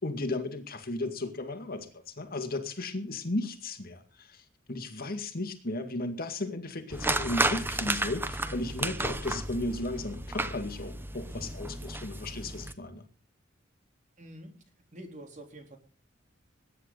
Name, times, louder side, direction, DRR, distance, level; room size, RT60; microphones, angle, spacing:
voice 1, 0.0-13.0, left 2 dB, 50° left, 7 dB, 2.2 m, -35 dB
sound 1, 6.9-12.7, right 2 dB, 10° right, 0.9 m, -33 dB
voice 2, 14.2-14.5 14.9-15.8, right 1 dB, 40° right, 4 dB, 3.8 m, -46 dB
21.0 x 10.0 x 4.0 m, 0.37 s
head